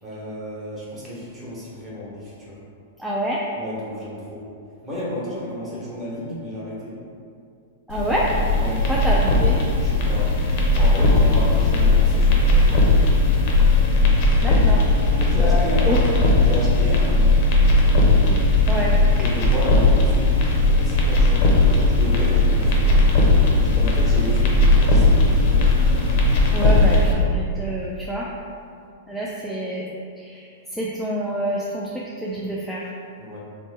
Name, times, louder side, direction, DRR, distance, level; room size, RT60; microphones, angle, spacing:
voice 1, 0.0-2.6 3.5-4.5 4.8-7.0 8.5-8.9 9.8-10.3 10.7-12.8 15.1-17.4 19.2-22.8 23.5-25.8 33.2-33.4, left 1 dB, 20° right, -7 dB, 1.0 m, -32 dB
voice 2, 3.0-3.4 7.9-8.3 8.9-9.6 14.4-14.9 15.3-16.0 18.3-18.4 18.7-19.0 26.5-28.3 29.1-30.4 30.7-32.9, right 1 dB, 5° right, -6 dB, 0.3 m, -27 dB
sound 1, 7.9-27.1, left 2 dB, 50° left, 0.6 m, -17 dB
Boat Water vehicle / Engine, 21.0-26.6, right 3 dB, 75° right, 0.7 m, -35 dB
3.0 x 2.0 x 3.3 m, 2.3 s
hypercardioid pair, 120°, 0 cm